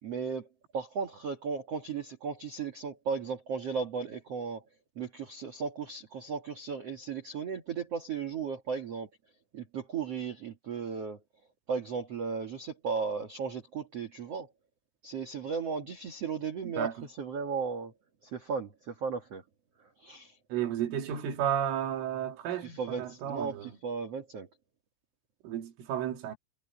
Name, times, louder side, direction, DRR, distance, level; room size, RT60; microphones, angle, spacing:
voice 1, 0.0-4.6 4.9-9.1 9.5-11.2 11.7-14.5 15.0-17.9 18.2-19.4 19.8-20.4 22.6-24.5, right 5 dB, 65° right, 1.5 m, -35 dB
voice 2, 20.5-23.7 25.4-26.4, right 10 dB, 85° right, 5.0 m, -32 dB
omnidirectional pair, 5.6 m